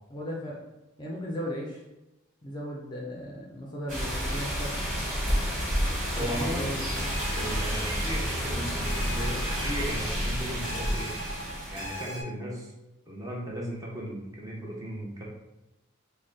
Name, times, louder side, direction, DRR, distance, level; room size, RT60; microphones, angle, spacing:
voice 1, 0.1-0.6 1.0-1.8 2.4-4.7 6.1-7.2, equal, 20° left, -3 dB, 0.5 m, -36 dB
sound 1, 3.9-12.0, equal, 40° right, 1.4 m, -30 dB
voice 2, 6.1-6.7 7.4-11.1 11.7-12.7 13.1-15.2, equal, 15° right, -4 dB, 0.8 m, -36 dB
sound 2, 6.3-12.2, equal, 60° right, 1.0 m, -40 dB
3.8 x 2.2 x 3.7 m, 0.97 s
head